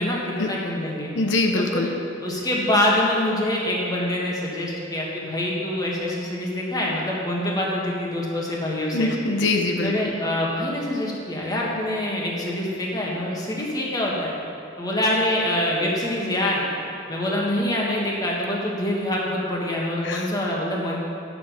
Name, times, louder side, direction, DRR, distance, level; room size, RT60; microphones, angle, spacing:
voice 1, 0.0-1.1 1.6-1.9 2.2-9.1 9.8-14.3 14.8-16.6 17.1-21.0, left 1 dB, 20° left, -3 dB, 1.6 m, -25 dB
voice 2, 1.2-1.9 8.9-9.9 20.0-20.2, left 2 dB, 85° left, 4 dB, 0.7 m, -23 dB
9.8 x 7.2 x 5.7 m, 2.6 s
head